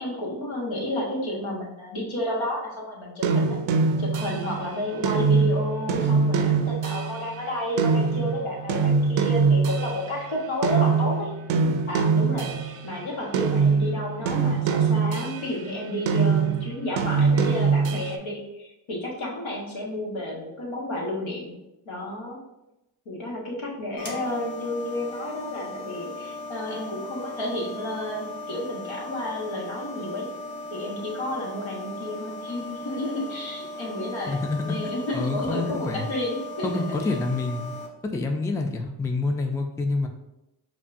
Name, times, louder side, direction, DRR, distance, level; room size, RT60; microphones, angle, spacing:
voice 1, 0.0-3.6 4.0-11.3 11.9-21.6 21.8-22.4 23.0-30.3 30.7-36.7 37.0-37.1, left 1 dB, 75° left, -3 dB, 1.3 m, -31 dB
sound 1, 3.2-10.4 10.6-12.9 13.3-15.6 16.1-18.2, right 5 dB, 75° right, 0.5 m, -23 dB
sound 2, 24.0-37.9, left 2 dB, 45° left, 1.1 m, -38 dB
voice 2, 34.3-36.1 36.6-37.7 38.1-40.1, left 3 dB, 5° left, 5 dB, 0.3 m, -27 dB
5.1 x 2.2 x 2.5 m, 0.92 s
cardioid pair, 50°, 48 cm